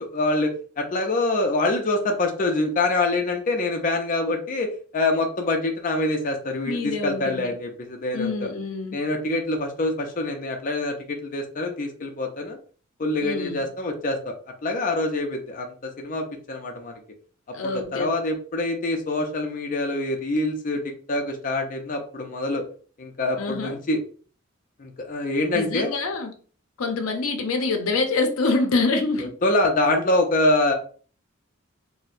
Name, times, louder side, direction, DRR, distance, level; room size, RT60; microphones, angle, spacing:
voice 1, 0.0-8.5 8.9-12.6 13.0-14.3 14.6-17.0 17.6-20.8 21.1-22.6 23.0-24.0 24.8-25.9 29.4-30.7, left 2 dB, 40° left, 0.5 m, -25 dB
voice 2, 6.7-7.5 8.1-9.0 13.2-13.6 17.5-18.1 23.4-23.8 25.5-26.4 26.8-29.3, left 3 dB, 90° left, 0.6 m, -26 dB
4.2 x 2.1 x 2.5 m
head